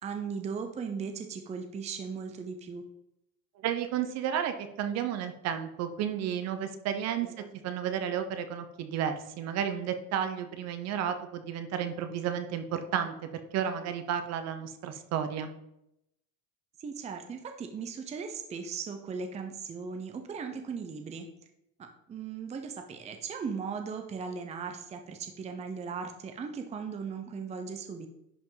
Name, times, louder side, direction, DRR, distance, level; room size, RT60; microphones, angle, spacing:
voice 1, 0.0-2.8 7.2-7.5 16.8-21.3 21.8-28.1, right 5 dB, 20° right, 5 dB, 0.7 m, -38 dB
voice 2, 3.6-7.3 7.6-15.5, right 9 dB, 45° right, 8 dB, 0.9 m, -32 dB
11.0 x 5.1 x 3.9 m, 0.84 s
cardioid pair, 145°, 35 cm